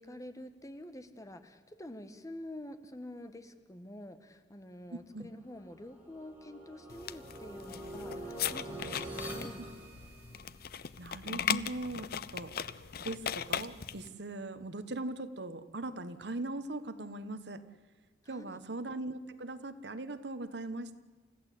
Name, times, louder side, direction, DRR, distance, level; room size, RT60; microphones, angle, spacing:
voice 1, 0.0-9.6 18.2-18.6, left 1 dB, 20° left, 9 dB, 1.4 m, -47 dB
voice 2, 4.9-5.3 9.6-9.7 11.0-12.5 13.0-17.6 18.3-21.0, right 2 dB, 70° right, 12 dB, 1.3 m, -40 dB
sound 1, 5.5-10.7, right 1 dB, 10° right, 6.4 m, -45 dB
sound 2, 6.9-14.1, left 8 dB, 60° left, 0.7 m, -38 dB
29.5 x 15.0 x 8.4 m, 1.3 s
head